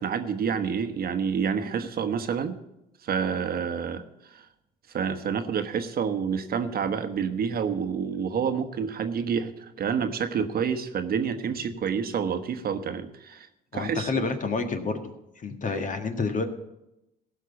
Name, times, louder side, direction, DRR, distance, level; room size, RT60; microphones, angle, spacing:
voice 1, 0.0-2.6 3.0-4.4 4.9-13.5 13.7-14.1, right 7 dB, 50° right, 8 dB, 1.2 m, -28 dB
voice 2, 13.7-15.1 15.4-16.4, left 4 dB, 40° left, 7 dB, 1.6 m, -29 dB
16.0 x 5.8 x 7.1 m, 0.88 s
hypercardioid pair, 65°, 20 cm